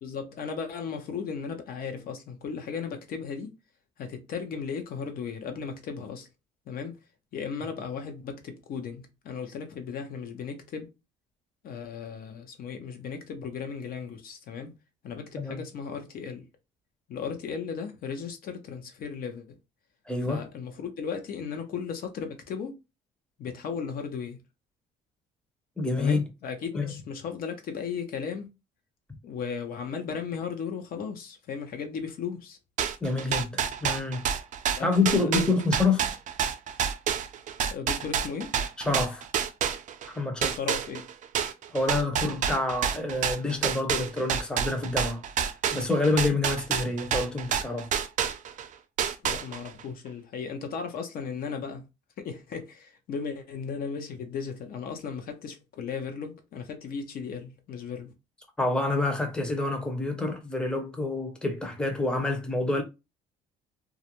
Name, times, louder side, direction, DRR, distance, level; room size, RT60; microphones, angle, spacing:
voice 1, 0.0-3.5 4.0-6.3 6.7-7.0 7.3-10.9 11.6-14.7 15.0-16.4 17.1-19.6 20.2-22.8 23.4-24.4 26.0-28.5 29.2-32.6 34.8-35.3 37.7-38.5 40.5-41.0 49.2-51.9 52.2-58.1, left 6 dB, 60° left, 0.7 m, -36 dB
voice 2, 20.1-20.4 25.8-26.2 26.8-26.9 33.0-34.2 34.8-36.0 38.8-39.2 40.1-40.6 41.7-45.2 45.7-47.9 58.6-62.8, left 2 dB, 5° left, 0.6 m, -27 dB
sound 1, 32.8-40.1 40.4-48.7 49.0-49.8, right 8 dB, 50° right, 0.4 m, -28 dB
2.4 x 2.1 x 2.9 m
cardioid pair, 110°, 17 cm